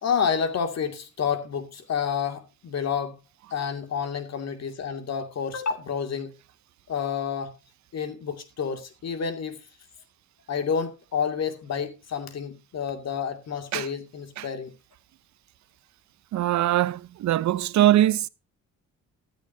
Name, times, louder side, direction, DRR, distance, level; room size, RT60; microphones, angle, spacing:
voice 1, 0.0-3.2 3.5-6.4 6.9-7.6 7.9-9.7 10.5-14.7, left 7 dB, 60° left, 2.5 m, -29 dB
voice 2, 16.3-18.3, right 13 dB, 65° right, 0.8 m, -22 dB
14.0 x 13.0 x 2.8 m
cardioid pair, 90°, 30 cm